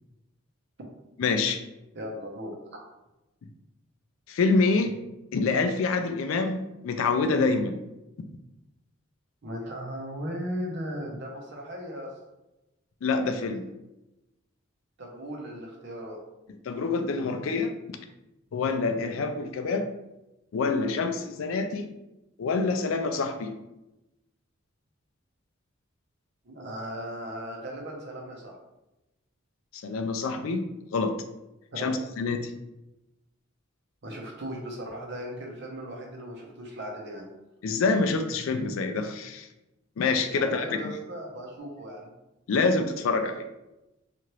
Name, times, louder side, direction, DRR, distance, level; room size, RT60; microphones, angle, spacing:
voice 1, 1.2-1.6 4.3-4.9 5.3-7.8 13.0-13.7 16.7-17.7 18.5-19.9 20.5-21.9 22.4-23.5 29.7-30.6 30.9-31.1 31.8-32.5 37.6-39.5 40.0-40.9 42.5-43.5, left 4 dB, 75° left, 7 dB, 0.4 m, -26 dB
voice 2, 1.9-2.8 9.4-12.1 15.0-16.2 26.4-28.6 31.7-31.9 34.0-37.3 40.3-42.1, equal, 60° right, 0 dB, 0.7 m, -37 dB
2.9 x 2.5 x 3.0 m, 0.95 s
head